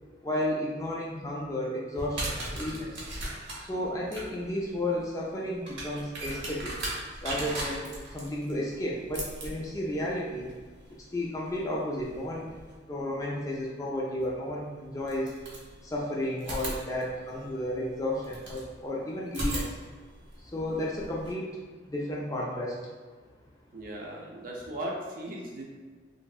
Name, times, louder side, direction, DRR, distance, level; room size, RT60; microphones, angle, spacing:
voice 1, 0.2-3.0 3.6-6.8 7.2-10.5 11.1-12.6 12.9-15.3 15.8-19.8 20.4-21.5 21.8-22.8, left 1 dB, 15° left, -4 dB, 0.3 m, -33 dB
sound 1, 1.9-12.7 14.2-14.3 15.0-16.0 16.4-18.7 19.3-21.3, right 1 dB, 65° right, 0.8 m, -39 dB
voice 2, 23.7-25.6, right 1 dB, 45° right, -2 dB, 0.5 m, -37 dB
3.1 x 2.6 x 2.3 m, 1.4 s
head